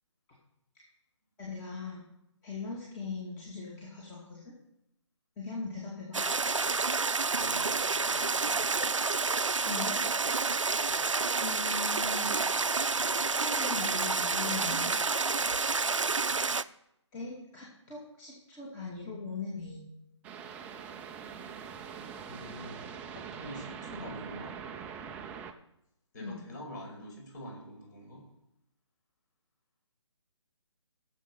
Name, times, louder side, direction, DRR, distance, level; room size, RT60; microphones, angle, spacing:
voice 1, 1.4-2.0 2.4-4.5 5.4-6.2 9.7-10.0 11.4-12.7 13.3-14.9 17.1-19.9 26.2-26.4, left 4 dB, 15° left, -5 dB, 2.3 m, -40 dB
sound 1, 6.1-16.6, right 4 dB, 85° right, 0.6 m, -29 dB
voice 2, 7.4-7.8 8.1-8.6 22.2-24.6 26.1-28.3, equal, 40° left, 1 dB, 5.4 m, -45 dB
sound 2, 20.2-25.5, right 7 dB, 10° right, 0.5 m, -43 dB
15.5 x 7.6 x 5.4 m, 0.82 s
figure-of-eight pair, 145°, 16 cm